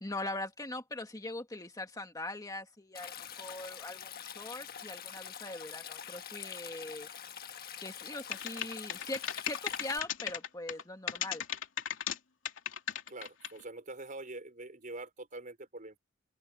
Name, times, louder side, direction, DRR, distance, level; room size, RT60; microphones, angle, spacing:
voice 1, 0.0-7.1 7.8-11.4, left 2 dB, 20° left, 2.0 m, -41 dB
Stream, 2.9-10.0, left 8 dB, 50° left, 1.5 m, -45 dB
sound 1, 8.3-10.8 11.1-12.2 12.5-13.6, left 9 dB, 85° left, 2.6 m, -35 dB
voice 2, 13.1-16.0, right 2 dB, 45° right, 5.3 m, -45 dB
open air
head